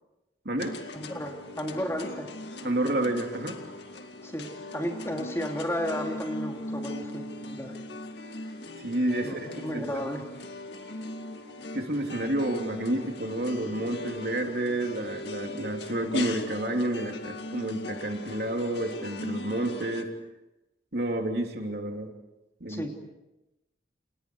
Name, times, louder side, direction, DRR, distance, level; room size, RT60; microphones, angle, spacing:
sound 1, 0.6-20.0, left 2 dB, 70° left, 2.1 m, -39 dB
voice 1, 0.9-2.3 4.2-4.5 4.7-7.7 9.2-10.2 22.7-22.9, equal, 15° left, 1 dB, 3.1 m, -33 dB
voice 2, 2.6-3.6 8.8-9.8 11.7-20.1 20.9-22.1 22.6-22.8, right 1 dB, 60° right, 3 dB, 3.2 m, -30 dB
29.5 x 29.0 x 4.8 m, 0.96 s
head